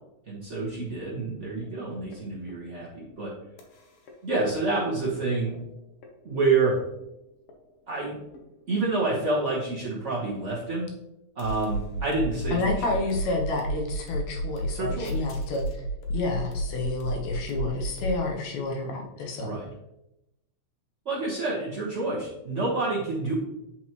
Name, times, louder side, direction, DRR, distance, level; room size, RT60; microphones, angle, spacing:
voice 1, 0.3-3.3 4.2-5.6 6.2-6.7 7.9-8.2 8.7-10.9 11.4-12.6 14.7-15.1 19.4-19.7 21.0-23.3, right 3 dB, 75° right, -6 dB, 0.6 m, -28 dB
sound 1, 1.6-1.7 2.1-2.2 2.5-3.1 3.6-3.7 4.1-4.2 4.4-5.1 5.5-5.6 6.0-6.1 6.4-7.0 7.5-7.6 8.0-8.1 8.3-9.0 11.4-18.2, right 1 dB, 65° left, 1.5 m, -32 dB
voice 2, 12.5-15.6 16.1-19.5, left 3 dB, 80° left, 1 dB, 2.2 m, -30 dB
8.2 x 4.4 x 3.0 m, 0.88 s
omnidirectional pair, 3.3 m